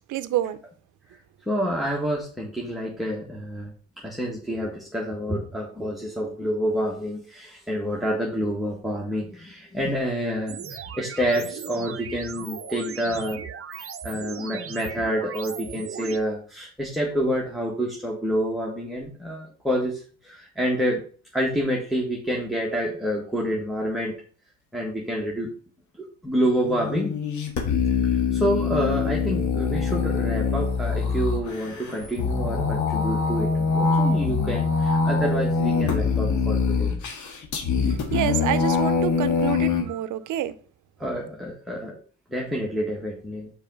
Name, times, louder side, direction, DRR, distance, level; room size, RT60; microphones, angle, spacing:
voice 1, 0.1-0.6 37.8-40.5, right 12 dB, 80° right, 0.7 m, -28 dB
voice 2, 1.5-13.4 13.8-21.0 21.3-24.2 24.7-25.5 26.0-27.2 28.1-36.9 41.0-42.0 42.3-43.5, equal, ahead, 1.5 m, -28 dB
sound 1, 10.5-16.2, right 8 dB, 45° right, 0.8 m, -37 dB
sound 2, 26.5-39.8, left 5 dB, 75° left, 1.7 m, -24 dB
5.5 x 4.8 x 5.3 m
cardioid pair, 90°, 30 cm